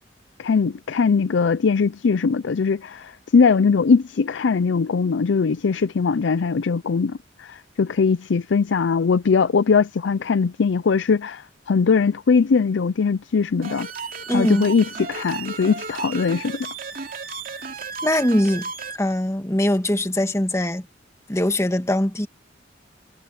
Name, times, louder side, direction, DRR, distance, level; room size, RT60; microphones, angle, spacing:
voice 1, 0.4-13.9 14.3-16.7, left 5 dB, 80° left, 0.5 m, -20 dB
sound 1, 13.6-19.0, right 4 dB, 50° right, 2.9 m, -34 dB
voice 2, 14.3-14.7 18.0-20.8 21.3-22.3, left 1 dB, 15° left, 1.5 m, -22 dB
head